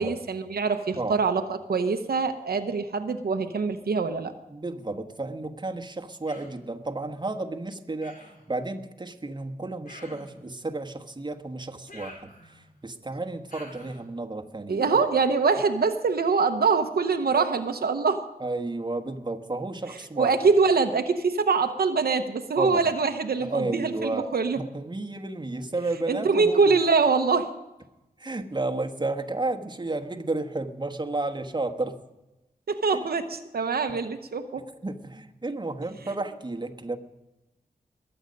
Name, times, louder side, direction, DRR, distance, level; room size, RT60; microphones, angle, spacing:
voice 1, 0.0-1.4 1.7-4.3 14.7-18.2 20.2-24.6 26.1-27.5 32.7-34.6, right 4 dB, 80° right, 6 dB, 0.9 m, -24 dB
voice 2, 4.5-15.0 18.4-20.3 22.6-22.9 23.4-24.3 24.6-26.7 28.2-31.9 32.9-33.1 34.8-37.0, right 2 dB, 30° right, 4 dB, 1.3 m, -32 dB
Human voice, 6.3-6.6 8.0-8.5 9.8-10.4 11.9-12.8 13.5-14.0, left 1 dB, 65° left, 4.1 m, -47 dB
21.5 x 8.1 x 5.3 m, 0.98 s
wide cardioid pair, 65°, 16 cm